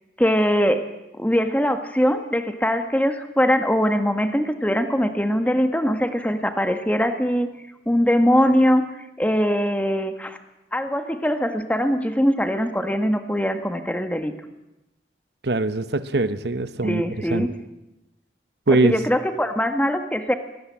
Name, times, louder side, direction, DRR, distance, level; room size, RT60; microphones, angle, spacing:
voice 1, 0.2-0.9 1.1-7.5 7.8-8.9 9.2-10.4 10.7-14.3 16.8-17.5 18.7-20.3, equal, 10° left, 8 dB, 1.5 m, -21 dB
voice 2, 15.4-17.0 17.3-17.5 18.7-18.9, right 2 dB, 70° right, 13 dB, 1.0 m, -22 dB
22.5 x 18.0 x 8.7 m, 0.95 s
head